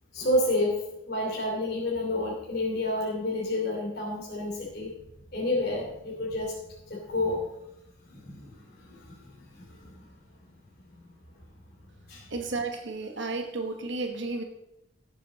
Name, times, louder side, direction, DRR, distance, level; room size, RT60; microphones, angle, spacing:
voice 1, 0.1-4.9 5.3-6.5 6.9-7.4 8.1-10.0 12.1-12.3, left 1 dB, 50° left, -4 dB, 2.9 m, -30 dB
voice 2, 12.3-14.4, right 3 dB, 60° right, 3 dB, 1.2 m, -32 dB
17.5 x 7.4 x 4.0 m, 0.86 s
head